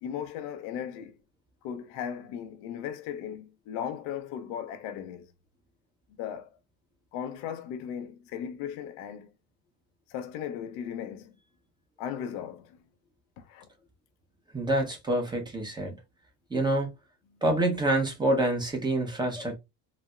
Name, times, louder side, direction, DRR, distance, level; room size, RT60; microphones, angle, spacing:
voice 1, 0.0-1.1 1.6-5.3 6.1-6.6 7.1-9.3 10.1-11.4 12.0-12.8 13.4-13.7, left 9 dB, 85° left, 0.7 m, -37 dB
voice 2, 14.5-16.0 16.5-16.9 17.4-19.6, right 1 dB, 10° right, 0.7 m, -27 dB
4.0 x 2.0 x 2.3 m
cardioid pair, 135°, 41 cm